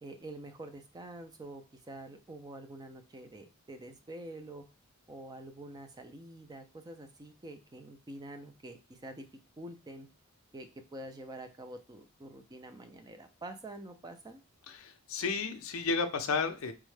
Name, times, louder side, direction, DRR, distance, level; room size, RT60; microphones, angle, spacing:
voice 1, 0.0-4.7 5.1-9.3 9.6-10.1 10.5-14.4, right 1 dB, 20° right, 7 dB, 0.3 m, -47 dB
voice 2, 14.7-16.7, left 4 dB, 65° left, 7 dB, 0.5 m, -32 dB
3.5 x 2.1 x 3.1 m, 0.32 s
head